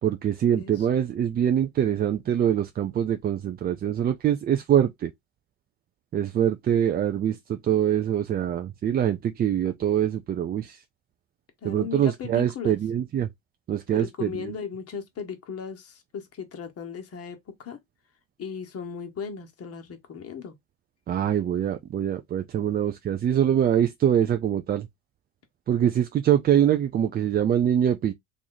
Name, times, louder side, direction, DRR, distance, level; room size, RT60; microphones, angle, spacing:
voice 1, 0.0-5.1 6.1-10.8 11.6-13.3 13.7-14.5 21.1-24.9 25.7-28.1, right 10 dB, 25° right, 0.4 m, -24 dB
voice 2, 11.6-12.8 13.9-17.8 18.4-20.5, left 6 dB, 40° left, 1.2 m, -37 dB
3.0 x 2.5 x 3.9 m
supercardioid pair, 85°, 38 cm